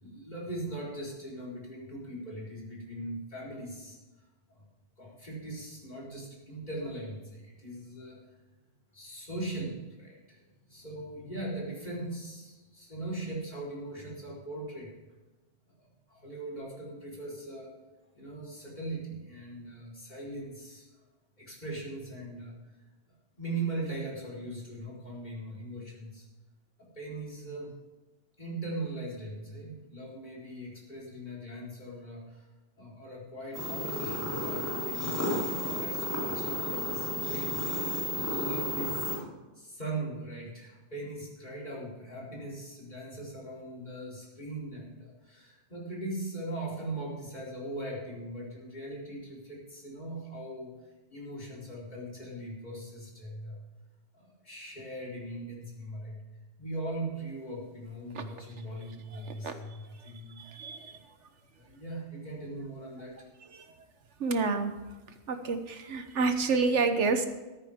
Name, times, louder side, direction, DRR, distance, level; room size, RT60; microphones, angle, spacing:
voice 1, 0.0-4.0 4.5-4.6 5.0-8.2 8.9-14.9 15.7-17.7 18.1-20.9 21.4-22.5 23.4-26.3 26.8-27.7 28.4-32.5 32.8-39.1 39.5-50.7 51.1-53.6 54.1-56.2 56.6-60.4 61.5-63.3, right 2 dB, 40° left, -4 dB, 4.3 m, -40 dB
sound 1, 33.5-39.2, left 1 dB, 15° left, 3.3 m, -32 dB
voice 2, 60.4-60.9 63.5-63.6 64.2-64.7 65.3-67.3, right 4 dB, 80° right, 8 dB, 1.3 m, -28 dB
14.0 x 13.5 x 3.7 m, 1.2 s
omnidirectional pair, 1.2 m